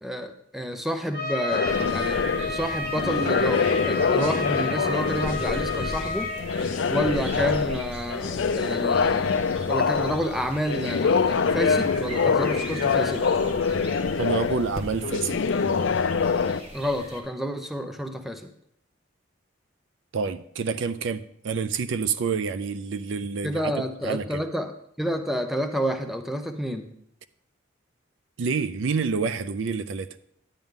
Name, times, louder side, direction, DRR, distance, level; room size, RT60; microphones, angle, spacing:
voice 1, 0.0-6.3 6.9-9.4 9.7-13.3 16.7-18.5 23.4-26.9, equal, ahead, 0.5 m, -29 dB
Trumpet, 1.1-6.4, left 3 dB, 50° right, 4.6 m, -31 dB
sound 1, 1.5-16.6, left 5 dB, 65° left, 0.5 m, -25 dB
sound 2, 1.6-17.2, equal, 30° right, 1.3 m, -40 dB
voice 2, 14.2-15.5 20.1-23.7 24.0-24.4 28.4-30.1, right 5 dB, 65° right, 0.4 m, -28 dB
10.5 x 9.0 x 3.6 m
head